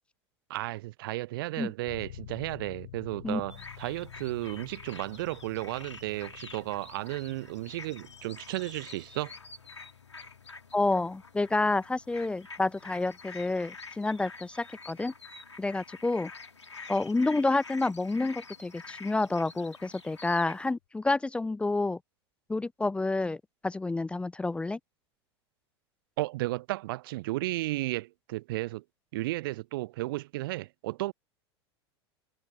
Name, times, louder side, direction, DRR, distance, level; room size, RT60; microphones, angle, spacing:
voice 1, 0.5-9.3 26.2-28.8 29.1-31.1, right 18 dB, 55° right, 0.4 m, -34 dB
sound 1, 1.9-18.6, left 13 dB, 60° left, 6.4 m, -52 dB
sound 2, 3.5-20.7, left 4 dB, 80° left, 2.4 m, -48 dB
voice 2, 10.7-15.1 15.6-16.3 16.9-22.0 22.5-23.4 23.6-24.8, left 2 dB, 10° left, 0.5 m, -29 dB
figure-of-eight pair, 85°, 14 cm